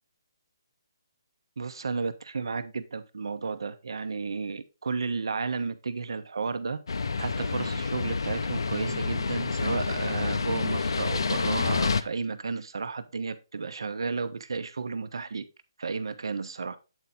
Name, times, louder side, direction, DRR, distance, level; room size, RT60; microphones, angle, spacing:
voice 1, 1.6-6.8 7.2-15.4 15.8-16.8, right 4 dB, 75° right, 0.8 m, -33 dB
sound 1, 6.9-12.0, left 4 dB, 75° left, 0.6 m, -28 dB
8.1 x 4.4 x 3.8 m
hypercardioid pair, 165°, 2 cm